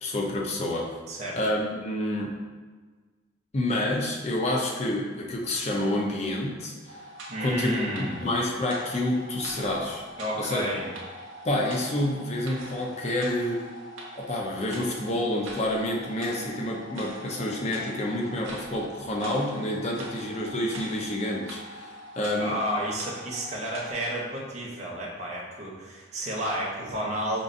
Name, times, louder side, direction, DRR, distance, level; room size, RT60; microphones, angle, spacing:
voice 1, 0.0-1.0 1.4-2.4 3.5-7.0 7.4-10.0 10.4-10.6 11.4-13.7 14.2-22.6, left 1 dB, 30° left, -1 dB, 0.5 m, -28 dB
voice 2, 1.1-1.4 7.3-8.2 10.2-10.9 22.4-27.4, equal, 35° right, -4 dB, 0.7 m, -31 dB
sound 1, 6.9-23.9, right 1 dB, 80° right, 0.8 m, -43 dB
5.1 x 2.4 x 2.5 m, 1.4 s
head